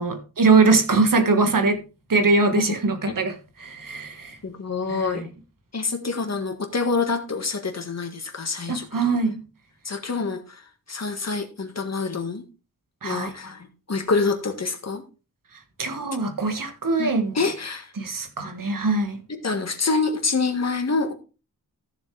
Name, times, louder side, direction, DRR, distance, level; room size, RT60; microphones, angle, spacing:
voice 1, 0.0-1.8 2.1-4.4 4.9-5.2 8.7-9.4 13.0-13.3 15.8-17.3 18.0-19.2, right 3 dB, 70° right, 1.8 m, -22 dB
voice 2, 4.4-5.3 5.7-9.2 9.8-12.4 13.0-15.0 17.0-17.9 19.3-21.1, left 4 dB, 50° left, 1.8 m, -27 dB
14.5 x 7.0 x 3.4 m
wide cardioid pair, 110°, 35 cm